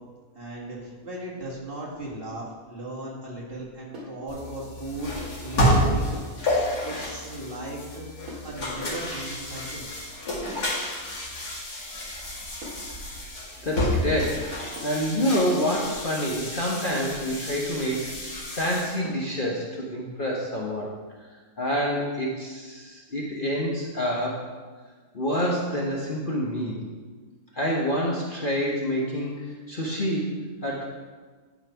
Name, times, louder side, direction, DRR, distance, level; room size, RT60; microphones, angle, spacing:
voice 1, 0.4-6.2 6.8-9.9, right 1 dB, 35° right, -5 dB, 2.0 m, -37 dB
sound 1, 3.9-4.2 6.1-6.4 8.3-8.6 10.5-10.8 12.6-12.9 14.8-15.1 16.9-17.2 19.0-19.3, equal, 65° right, 1.9 m, -41 dB
sound 2, 4.3-19.0, equal, 80° left, 2.6 m, -30 dB
voice 2, 13.6-20.9 21.6-24.5 25.1-26.8 27.5-30.9, equal, 35° left, -3 dB, 1.1 m, -27 dB
11.0 x 4.4 x 5.6 m, 1.4 s
omnidirectional pair, 1.7 m